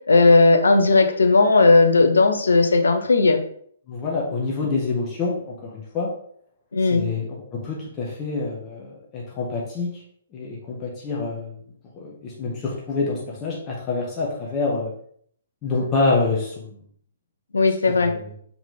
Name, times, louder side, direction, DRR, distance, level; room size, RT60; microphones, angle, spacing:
voice 1, 0.1-3.4 6.7-7.1 17.5-18.1, left 3 dB, 70° left, 6 dB, 0.9 m, -16 dB
voice 2, 3.9-6.1 6.9-10.0 10.3-11.5 11.9-14.9 15.6-16.7 17.9-18.2, left 3 dB, 25° left, -3 dB, 1.3 m, -27 dB
5.6 x 4.9 x 3.5 m, 0.63 s
figure-of-eight pair, 125°, 0 cm